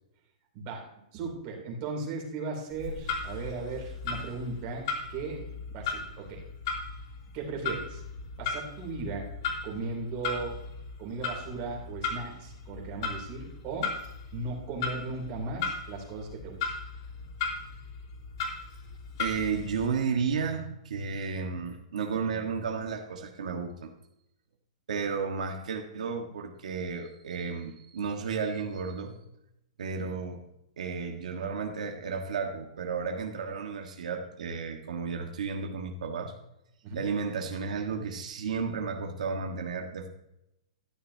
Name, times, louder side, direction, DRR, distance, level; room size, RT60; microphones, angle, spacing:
voice 1, 0.5-5.4 5.7-6.4 7.3-8.0 8.4-9.3 9.6-10.6 11.0-13.9 14.3-16.7 36.8-37.0, right 3 dB, 30° right, 0 dB, 2.9 m, -37 dB
Clock, 2.7-19.9, left 4 dB, 45° left, 2.9 m, -37 dB
voice 2, 19.2-23.9 24.9-29.2 29.8-30.4 30.8-36.3 36.9-40.1, right 5 dB, 85° right, 3 dB, 1.4 m, -33 dB
12.5 x 10.0 x 2.8 m, 0.84 s
hypercardioid pair, 170°, 4 cm